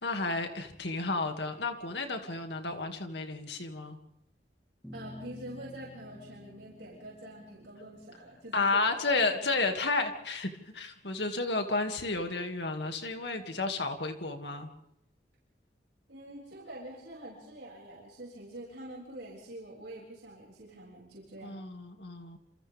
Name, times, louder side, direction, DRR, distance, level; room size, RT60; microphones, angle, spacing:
voice 1, 0.0-4.0 8.5-14.7 21.4-22.4, left 3 dB, 70° left, 5 dB, 2.4 m, -32 dB
sound 1, 4.8-11.4, left 1 dB, 5° left, 2.7 m, -52 dB
voice 2, 4.9-9.0 16.1-21.6, right 1 dB, 75° right, -4 dB, 6.7 m, -46 dB
28.0 x 27.5 x 3.6 m, 0.78 s
head